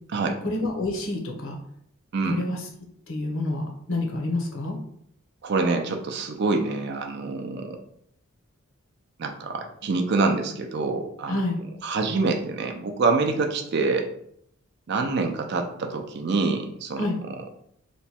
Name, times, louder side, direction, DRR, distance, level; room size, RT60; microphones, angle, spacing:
voice 1, 0.4-1.6 2.2-2.6 3.1-4.8 11.3-11.6 17.0-17.2, left 2 dB, 65° left, 0 dB, 0.8 m, -28 dB
voice 2, 2.1-2.4 5.4-7.8 9.2-11.4 11.8-14.1 14.9-17.1, right 3 dB, 50° right, 5 dB, 0.4 m, -26 dB
3.0 x 2.2 x 4.2 m, 0.69 s
head